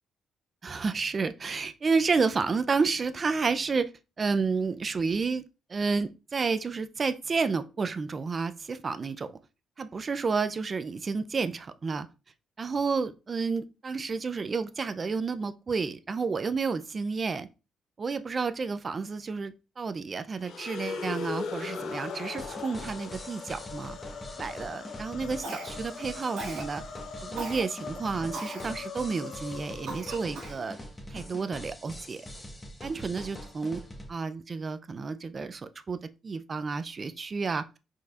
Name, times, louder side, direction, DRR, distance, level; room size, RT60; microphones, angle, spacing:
voice 1, 0.6-3.9 4.2-5.4 5.7-9.3 9.8-12.1 12.6-17.5 18.0-24.0 24.4-26.8 27.2-30.8 31.1-32.2 32.8-33.8 34.1-37.7, right 4 dB, 35° right, 0.5 m, -30 dB
sound 1, 20.4-30.6, left 5 dB, 70° left, 0.7 m, -40 dB
sound 2, 22.4-34.1, equal, 20° left, 1.3 m, -44 dB
Cough, 25.4-26.0 26.4-26.7 27.4-27.6 28.3-28.7 29.2-29.3 29.9-30.6, right 2 dB, 80° right, 1.3 m, -38 dB
4.8 x 4.2 x 2.4 m
cardioid pair, 90°, 0 cm